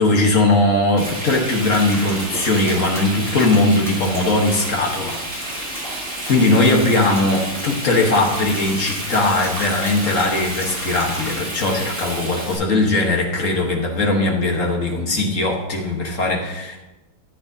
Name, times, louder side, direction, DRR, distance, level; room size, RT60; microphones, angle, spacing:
voice 1, 0.0-5.7 6.3-16.8, left 2 dB, 40° left, 0 dB, 1.5 m, -19 dB
Frying (food), 1.0-12.6, right 1 dB, 35° right, 3.6 m, -30 dB
sound 1, 1.4-11.3, equal, ahead, 2.6 m, -36 dB
13.5 x 8.3 x 2.8 m, 1.0 s
omnidirectional pair, 2.4 m